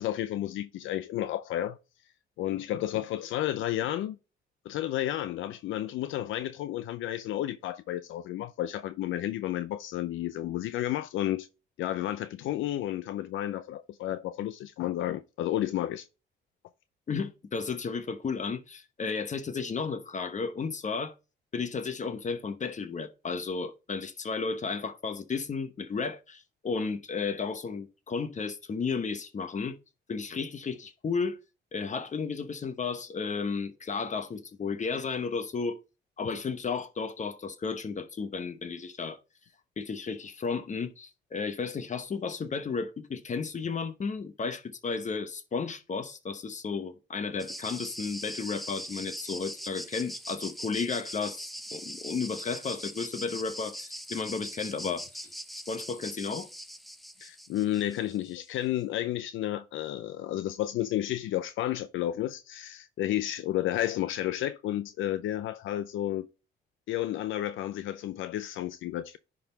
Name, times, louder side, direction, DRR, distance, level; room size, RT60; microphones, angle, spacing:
voice 1, 0.0-1.8 2.4-4.2 4.7-11.5 11.8-16.1 57.2-66.3 66.9-69.2, left 13 dB, 80° left, 0.5 m, -32 dB
voice 2, 17.1-21.1 21.5-29.8 30.1-31.4 31.7-35.8 36.2-39.2 39.8-55.3 55.7-56.5, left 5 dB, 40° left, 0.9 m, -33 dB
sound 1, 47.4-58.3, equal, ahead, 0.8 m, -41 dB
10.5 x 3.8 x 3.9 m
cardioid pair, 90°, 20 cm